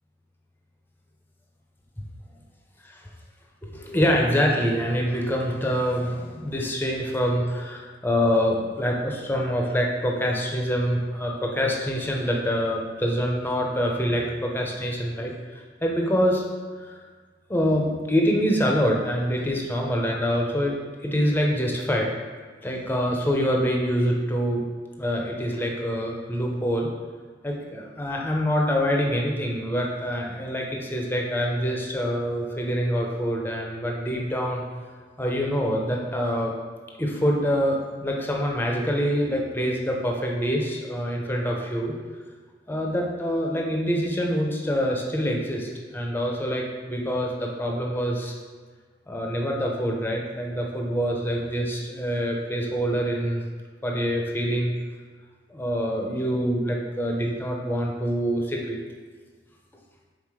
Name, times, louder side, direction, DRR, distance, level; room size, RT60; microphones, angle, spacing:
voice 1, 3.6-16.4 16.9-17.0 17.5-20.8 21.0-22.1 22.6-24.6 25.0-26.9 27.4-34.6 35.2-36.5 37.0-41.9 42.7-48.3 49.1-53.4 53.8-54.7 55.5-58.8, equal, 10° left, -1 dB, 0.7 m, -25 dB
5.7 x 4.0 x 4.8 m, 1.5 s
head